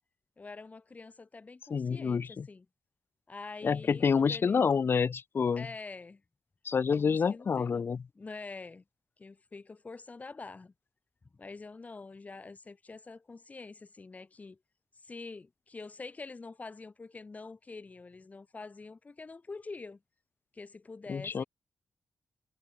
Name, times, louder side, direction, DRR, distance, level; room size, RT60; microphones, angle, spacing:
voice 1, 0.4-2.7 3.3-4.7 5.6-6.2 6.9-7.9 8.2-8.8 9.2-10.7 11.3-14.6 14.9-20.0 20.5-21.5, left 3 dB, 30° left, 7.5 m, -46 dB
voice 2, 1.7-2.5 3.6-5.7 6.6-8.0 21.1-21.4, left 6 dB, 50° left, 6.2 m, -28 dB
wide cardioid pair, 110°, 5 cm